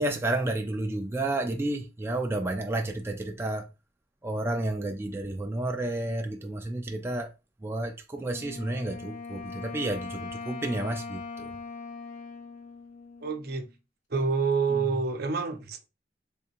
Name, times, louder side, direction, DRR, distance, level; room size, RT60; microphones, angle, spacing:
voice 1, 0.0-3.6 4.2-7.3 7.6-11.2 14.1-14.2, right 2 dB, 15° right, 0.3 m, -31 dB
Wind instrument woodwind instrument, 8.2-13.7, left 4 dB, 45° left, 0.6 m, -41 dB
voice 2, 13.2-13.7 14.1-15.9, right 4 dB, 60° right, 0.6 m, -28 dB
3.4 x 2.7 x 2.9 m
head